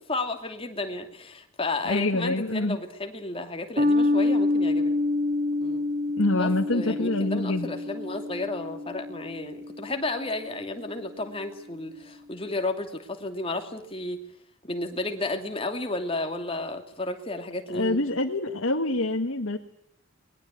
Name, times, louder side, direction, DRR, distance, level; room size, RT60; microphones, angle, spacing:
voice 1, 0.1-4.9 5.6-5.8 6.3-14.2 14.6-18.0, left 2 dB, 25° left, 5 dB, 2.7 m, -32 dB
voice 2, 1.9-2.8 6.2-7.7 17.7-19.6, left 2 dB, 75° left, 3 dB, 1.8 m, -26 dB
sound 1, 3.8-10.5, left 2 dB, 40° right, 1.4 m, -27 dB
26.5 x 21.5 x 8.4 m, 0.67 s
head